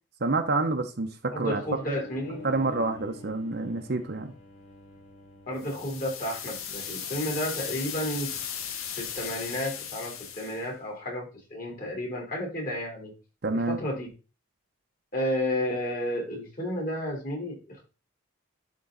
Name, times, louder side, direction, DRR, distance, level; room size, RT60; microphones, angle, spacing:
voice 1, 0.2-1.1 1.4-1.6 2.4-4.3 13.4-13.8, right 3 dB, 50° right, 0.7 m, -27 dB
voice 2, 1.3-2.4 5.5-8.3 9.0-13.1 13.7-14.1 15.1-17.8, left 1 dB, 40° left, 3.3 m, -32 dB
sound 1, 1.6-7.0, left 3 dB, 75° left, 3.1 m, -48 dB
sound 2, 5.6-10.6, left 8 dB, 90° left, 1.1 m, -37 dB
11.0 x 3.8 x 3.8 m
head